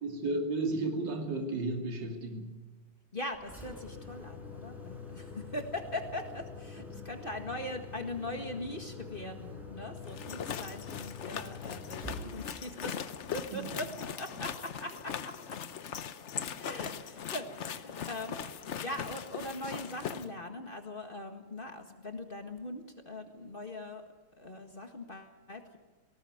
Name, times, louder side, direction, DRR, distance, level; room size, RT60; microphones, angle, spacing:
voice 1, 0.0-2.5 13.5-13.6, right 2 dB, 65° right, 3 dB, 3.3 m, -33 dB
voice 2, 3.1-13.0 13.3-15.6 16.6-18.4 18.8-24.0 24.4-25.8, left 1 dB, 30° left, 5 dB, 1.8 m, -41 dB
Engine, 3.3-14.3, left 4 dB, ahead, 4.9 m, -46 dB
sound 1, 10.0-20.3, left 8 dB, 55° left, 0.8 m, -40 dB
19.0 x 18.5 x 9.5 m, 1.2 s
omnidirectional pair, 2.2 m